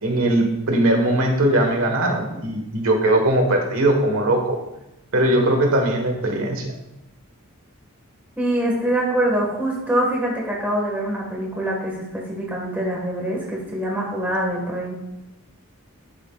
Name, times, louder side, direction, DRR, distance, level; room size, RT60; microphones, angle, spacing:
voice 1, 0.0-4.6 5.1-6.7, right 1 dB, 70° right, 3 dB, 1.5 m, -20 dB
voice 2, 8.4-14.9, right 1 dB, 10° right, -3 dB, 1.7 m, -24 dB
12.5 x 7.7 x 2.5 m, 0.91 s
head